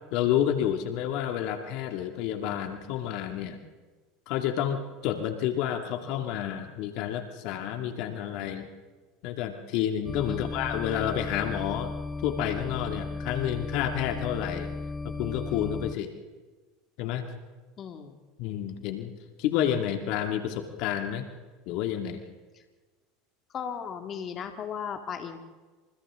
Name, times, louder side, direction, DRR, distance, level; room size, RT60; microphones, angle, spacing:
voice 1, 0.1-3.6 4.3-8.7 9.2-11.9 12.2-14.7 15.0-16.1 17.0-17.2 18.4-19.1 19.4-21.3 21.7-22.2, left 10 dB, 60° left, 5 dB, 2.2 m, -29 dB
sound 1, 10.1-16.0, left 3 dB, 15° left, 0.7 m, -35 dB
voice 2, 17.8-18.2 23.5-25.4, left 7 dB, 40° left, 5 dB, 2.2 m, -36 dB
29.0 x 27.0 x 3.7 m, 1.3 s
hypercardioid pair, 85°, 0 cm